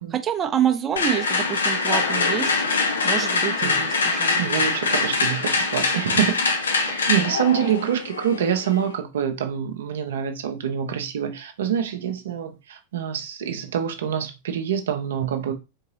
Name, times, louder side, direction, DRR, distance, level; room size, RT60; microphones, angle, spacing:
voice 1, 0.1-2.5 3.0-4.8, right 9 dB, 25° right, 0.6 m, -27 dB
sound 1, 1.0-8.9, left 3 dB, 70° left, 0.6 m, -23 dB
voice 2, 4.4-15.5, right 9 dB, 60° right, 0.6 m, -26 dB
3.8 x 3.7 x 2.8 m
figure-of-eight pair, 90°, 0 cm